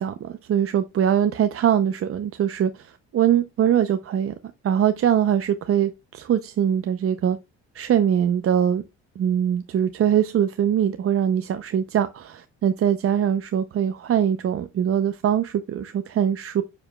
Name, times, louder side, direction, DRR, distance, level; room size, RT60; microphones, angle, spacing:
voice 1, 0.0-4.3 4.6-7.4 7.7-8.8 9.2-16.6, right 9 dB, 50° right, 0.5 m, -22 dB
8.7 x 5.1 x 2.2 m
cardioid pair, 90°, 30 cm